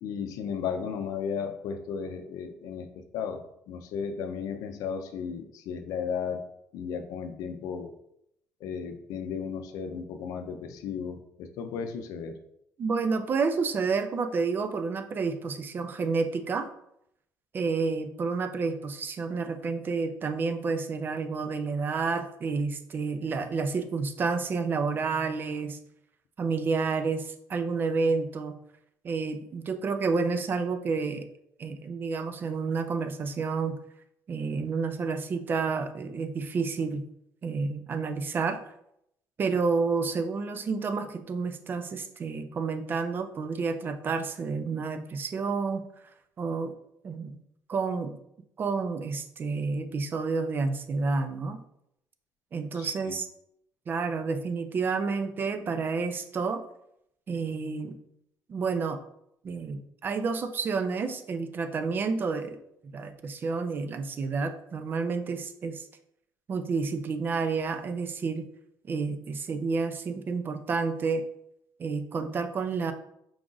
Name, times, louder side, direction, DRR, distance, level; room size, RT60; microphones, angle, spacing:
voice 1, 0.0-6.4 6.7-7.9 8.6-12.4 52.7-53.1, left 6 dB, 75° left, 7 dB, 0.5 m, -35 dB
voice 2, 12.8-16.7 17.5-25.8 26.4-28.6 29.0-31.3 31.6-33.8 34.3-37.0 37.4-38.6 39.4-45.8 46.4-46.7 47.0-47.4 47.7-48.2 48.6-51.6 52.5-53.3 53.9-56.6 57.3-58.0 58.5-59.0 59.4-62.6 62.9-65.9 66.5-68.5 68.9-71.2 71.8-72.9, right 4 dB, 35° right, 9 dB, 0.4 m, -30 dB
4.7 x 2.4 x 3.9 m, 0.76 s
cardioid pair, 120°, 6 cm